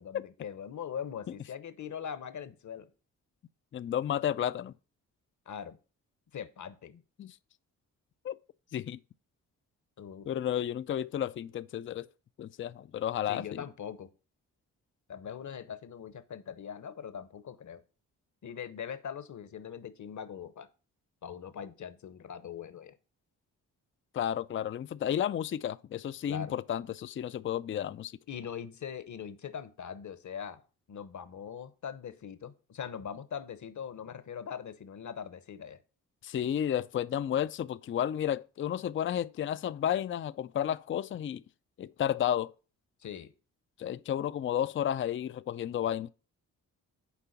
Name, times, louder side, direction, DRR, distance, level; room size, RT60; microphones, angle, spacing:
voice 1, 0.0-2.9 5.5-5.8 6.3-7.0 10.0-10.3 13.3-14.1 15.1-17.8 18.4-20.7 21.2-23.0 26.3-26.5 28.3-30.6 30.9-35.8 43.0-43.3, left 8 dB, 50° left, 0.9 m, -41 dB
voice 2, 3.7-4.7 7.2-7.4 8.2-8.4 8.7-9.0 10.3-12.1 12.4-13.6 24.1-28.1 36.2-41.4 41.8-42.5 43.8-46.1, left 10 dB, 35° left, 0.4 m, -32 dB
7.0 x 4.5 x 5.8 m
supercardioid pair, 45°, 37 cm